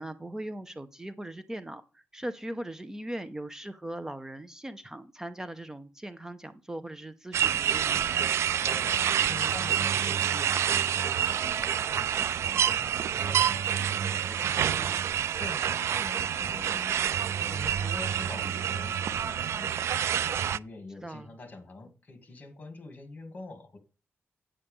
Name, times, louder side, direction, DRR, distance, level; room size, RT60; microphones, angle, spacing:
voice 1, 0.0-8.1 14.6-14.9 21.0-21.3, right 1 dB, 10° right, 10 dB, 0.6 m, -39 dB
sound 1, 7.3-20.6, right 9 dB, 75° right, 0.3 m, -28 dB
voice 2, 8.6-23.8, left 3 dB, 35° left, 6 dB, 2.7 m, -45 dB
9.8 x 8.2 x 3.6 m, 0.34 s
wide cardioid pair, 135°, 5 cm